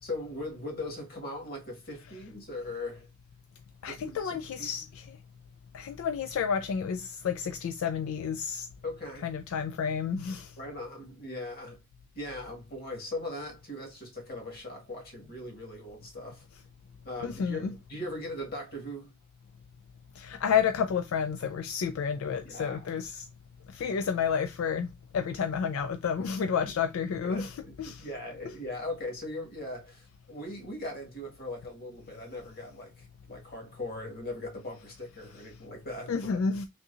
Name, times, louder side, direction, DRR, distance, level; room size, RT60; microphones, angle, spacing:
voice 1, 0.0-3.1 3.9-4.8 8.8-9.3 10.6-11.8 12.1-16.5 17.0-19.1 22.4-22.9 26.6-26.7 27.2-36.5, left 1 dB, 45° left, 1.4 m, -39 dB
voice 2, 3.8-5.2 5.7-8.7 9.2-10.5 17.2-17.7 20.2-23.3 23.7-24.9 25.1-27.5 27.8-28.1 36.1-36.7, left 7 dB, 75° left, 0.3 m, -30 dB
3.6 x 2.8 x 2.4 m
head